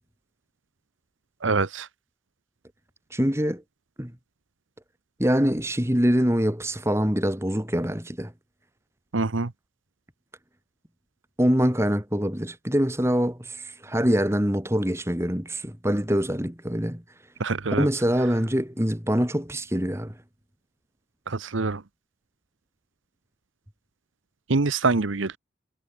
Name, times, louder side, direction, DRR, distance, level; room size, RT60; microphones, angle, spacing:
voice 1, 1.4-1.9 9.1-9.5 17.4-17.9 21.3-21.8 24.5-25.4, right 3 dB, 85° right, 1.0 m, -25 dB
voice 2, 3.1-3.6 4.0-4.1 5.2-8.3 11.4-17.0 17.7-20.1, equal, 15° right, 2.7 m, -24 dB
head